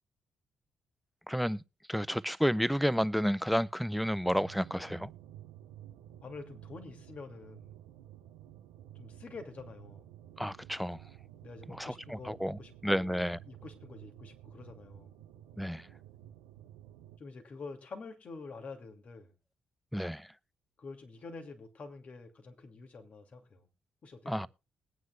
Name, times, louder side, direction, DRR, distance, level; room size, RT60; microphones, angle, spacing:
voice 1, 1.3-1.6 1.9-5.1 10.4-11.0 11.7-11.9 12.3-13.4 15.6-15.9 19.9-20.3 24.3-24.5, equal, ahead, 0.5 m, -31 dB
sound 1, 4.2-17.2, right 11 dB, 80° right, 0.7 m, -53 dB
voice 2, 6.2-7.8 8.9-10.1 11.4-15.2 17.2-19.3 20.8-23.7 24.0-24.5, left 3 dB, 50° left, 2.6 m, -47 dB
21.5 x 9.3 x 2.4 m
hypercardioid pair, 45°, 3 cm